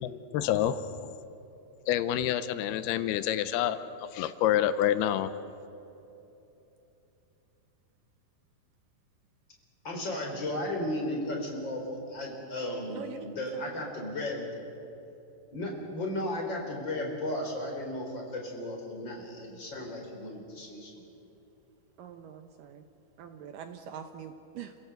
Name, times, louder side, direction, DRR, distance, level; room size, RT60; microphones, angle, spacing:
voice 1, 0.0-1.0 1.9-3.8 4.1-5.3, left 11 dB, 90° left, 2.7 m, -27 dB
voice 2, 9.8-14.5 15.5-20.9, left 1 dB, 30° left, 4.5 m, -35 dB
voice 3, 12.9-13.9 22.0-22.9 23.2-24.8, right 8 dB, 70° right, 2.2 m, -44 dB
29.0 x 16.5 x 8.0 m
omnidirectional pair, 4.6 m